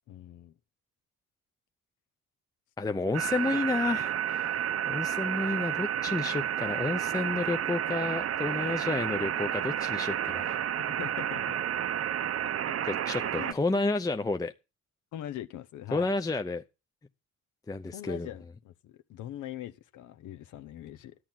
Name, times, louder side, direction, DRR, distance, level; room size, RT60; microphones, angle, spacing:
voice 1, 0.1-0.5 2.9-3.0 8.8-8.9 10.9-11.6 13.3-13.6 15.1-16.1 17.9-21.1, left 12 dB, 80° left, 0.9 m, -42 dB
voice 2, 2.8-10.6 12.9-14.5 15.9-16.6 17.7-18.3, left 3 dB, 10° left, 0.6 m, -31 dB
sound 1, 3.1-13.5, right 10 dB, 50° right, 0.7 m, -31 dB
11.5 x 9.0 x 5.8 m
cardioid pair, 90°, 30 cm